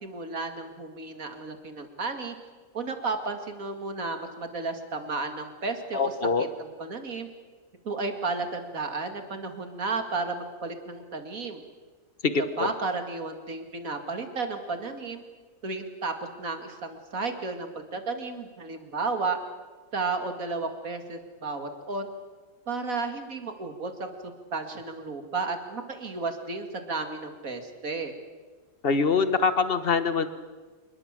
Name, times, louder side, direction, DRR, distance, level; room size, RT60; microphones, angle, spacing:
voice 1, 0.0-2.3 2.7-7.3 7.8-11.6 12.6-15.2 15.6-19.4 19.9-22.1 22.7-28.1, right 3 dB, 75° right, 6 dB, 2.7 m, -33 dB
voice 2, 5.9-6.5 12.2-12.7 28.8-30.3, left 5 dB, 45° left, 11 dB, 1.5 m, -24 dB
27.0 x 21.0 x 7.6 m, 1.4 s
omnidirectional pair, 1.5 m